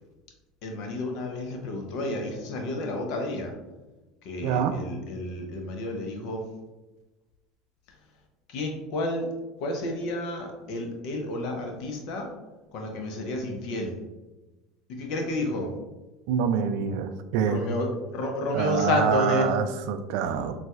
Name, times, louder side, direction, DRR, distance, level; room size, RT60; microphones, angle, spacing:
voice 1, 0.6-3.5 4.2-6.4 8.5-9.3 9.6-12.3 12.7-14.0 14.9-15.7 17.4-19.6, left 1 dB, 65° left, 2 dB, 0.7 m, -30 dB
voice 2, 4.4-4.7 16.3-17.6 18.5-20.5, right 7 dB, 70° right, 8 dB, 0.3 m, -26 dB
3.8 x 2.3 x 2.4 m, 1.1 s
hypercardioid pair, 80°, 0 cm